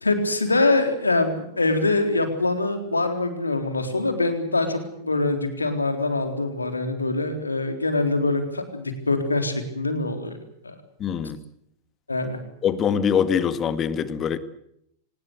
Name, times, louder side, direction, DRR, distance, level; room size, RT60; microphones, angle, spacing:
voice 1, 0.0-10.4 10.6-10.7 12.1-12.4, left 2 dB, 80° left, 7 dB, 3.8 m, -24 dB
voice 2, 11.0-11.4 12.6-14.4, left 7 dB, 30° left, 13 dB, 1.9 m, -23 dB
24.5 x 20.5 x 8.1 m, 0.74 s
figure-of-eight pair, 90°, 0 cm